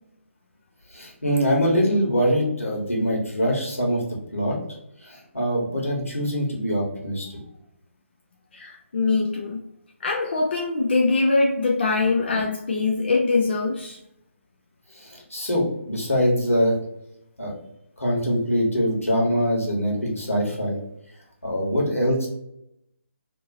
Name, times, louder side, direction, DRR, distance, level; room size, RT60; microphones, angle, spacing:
voice 1, 0.9-4.0 4.3-4.5 5.0-7.4 14.9-16.8 17.4-17.5 18.0-20.8 21.4-22.3, equal, 85° left, -3 dB, 1.4 m, -23 dB
voice 2, 8.5-9.6 10.0-14.0, left 3 dB, 50° left, 0 dB, 0.5 m, -23 dB
2.9 x 2.6 x 2.7 m, 0.81 s
figure-of-eight pair, 145°, 7 cm